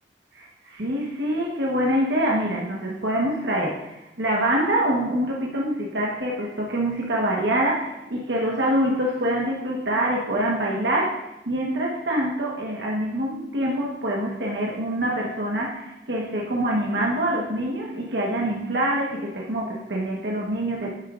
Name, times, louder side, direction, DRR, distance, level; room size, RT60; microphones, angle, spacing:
voice 1, 0.3-20.9, right 1 dB, 70° right, -2 dB, 1.3 m, -25 dB
10.5 x 8.0 x 2.5 m, 0.95 s
head